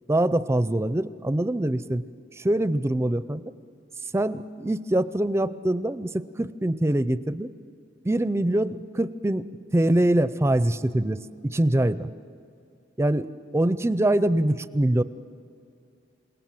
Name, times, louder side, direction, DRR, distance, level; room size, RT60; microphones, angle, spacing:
voice 1, 0.1-2.0 2.4-3.4 4.1-7.5 8.0-9.5 9.7-12.1 13.0-15.0, right 1 dB, 15° right, 14 dB, 0.5 m, -24 dB
28.5 x 18.0 x 7.6 m, 2.5 s
head